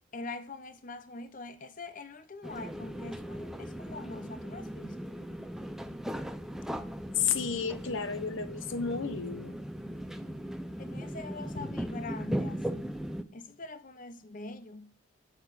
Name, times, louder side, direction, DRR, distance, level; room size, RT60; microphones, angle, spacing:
voice 1, 0.1-5.2 10.8-12.9 13.3-14.9, left 3 dB, 40° left, 0.8 m, -43 dB
sound 1, 2.4-13.2, equal, ahead, 0.6 m, -38 dB
voice 2, 7.2-9.6, left 6 dB, 70° left, 0.9 m, -32 dB
8.9 x 7.9 x 6.3 m
head